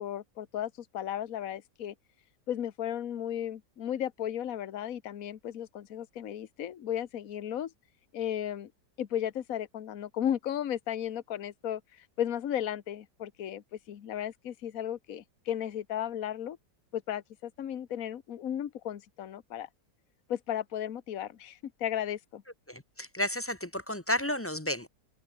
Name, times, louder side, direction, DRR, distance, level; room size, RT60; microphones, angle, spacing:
voice 1, 0.0-1.9 2.5-7.7 8.1-8.7 9.0-16.6 16.9-19.7 20.3-22.4, left 10 dB, 55° left, 1.5 m, -35 dB
voice 2, 22.7-24.9, left 1 dB, 10° left, 0.7 m, -32 dB
open air
omnidirectional pair, 1.9 m